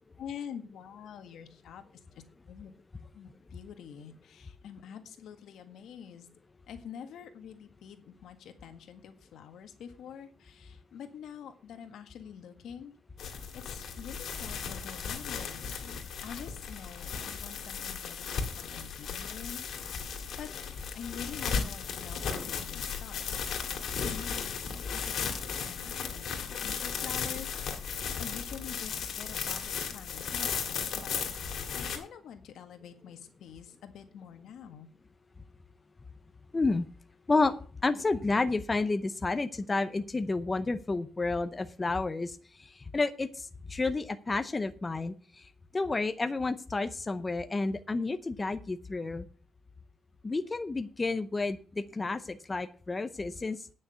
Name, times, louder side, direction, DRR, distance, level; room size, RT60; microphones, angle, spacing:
voice 1, 0.2-1.8 2.1-2.7 3.1-6.3 6.7-12.9 13.5-15.7 16.2-19.6 20.9-23.3 24.0-27.5 27.9-31.1 31.7-34.9, left 8 dB, 80° left, 8 dB, 1.7 m, -46 dB
sound 1, 13.2-32.0, left 6 dB, 60° left, 2.5 m, -36 dB
voice 2, 36.5-36.9 37.3-45.5 45.7-49.3 50.2-53.6, left 3 dB, 20° left, 9 dB, 0.6 m, -31 dB
9.6 x 6.4 x 8.1 m, 0.41 s
cardioid pair, 155°, 0 cm